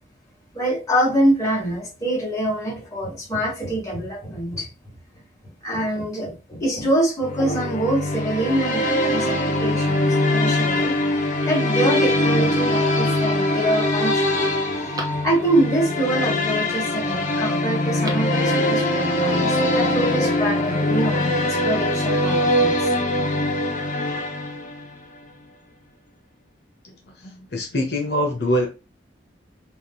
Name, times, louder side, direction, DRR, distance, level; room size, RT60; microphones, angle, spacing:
voice 1, 0.5-4.7 5.6-11.1 11.5-22.8, right 1 dB, 20° left, 2.0 m, -25 dB
sound 1, 7.2-24.9, left 1 dB, 45° left, 1.0 m, -22 dB
Telephone, 17.8-18.4 18.7-18.8, right 2 dB, 20° right, 0.9 m, -38 dB
voice 2, 27.2-28.7, equal, 65° left, 1.1 m, -23 dB
5.1 x 2.5 x 4.0 m
head